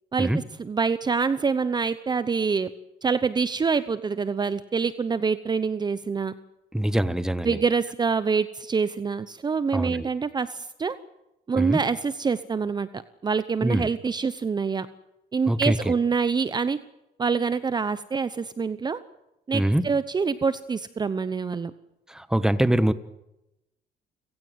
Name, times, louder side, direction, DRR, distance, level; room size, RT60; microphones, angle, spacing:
voice 1, 0.1-2.7 3.0-6.3 7.4-11.0 11.5-12.9 13.2-14.9 15.3-16.8 17.2-19.0 19.5-21.7, right 5 dB, 25° right, 14 dB, 0.9 m, -26 dB
voice 2, 6.7-7.6 9.7-10.1 11.6-11.8 13.6-13.9 15.5-15.9 19.5-19.9 22.1-22.9, right 1 dB, 5° right, 13 dB, 1.3 m, -23 dB
30.0 x 17.0 x 8.1 m, 0.90 s
cardioid pair, 110°, 17 cm